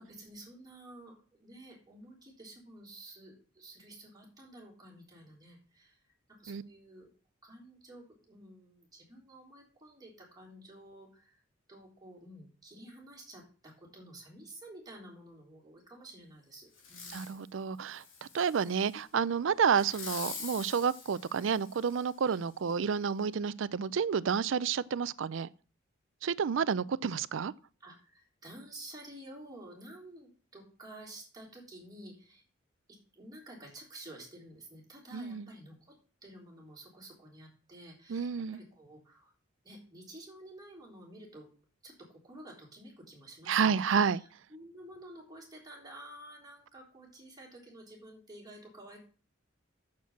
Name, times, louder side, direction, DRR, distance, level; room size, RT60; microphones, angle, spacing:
voice 1, 0.0-7.1 7.4-11.4 11.7-17.4 22.3-22.4 27.2-27.3 27.8-32.4 32.9-36.0 36.2-39.3 39.6-41.5 41.8-49.0, right 1 dB, 20° right, 3.8 m, -51 dB
Fireworks, 16.8-17.4 17.9-19.0 19.7-22.1 22.7-22.8, left 5 dB, 80° left, 3.1 m, -45 dB
voice 2, 17.1-25.5 26.2-27.5 35.1-35.5 38.1-38.6 43.5-44.2, right 6 dB, 70° right, 0.4 m, -30 dB
7.4 x 6.4 x 7.1 m
head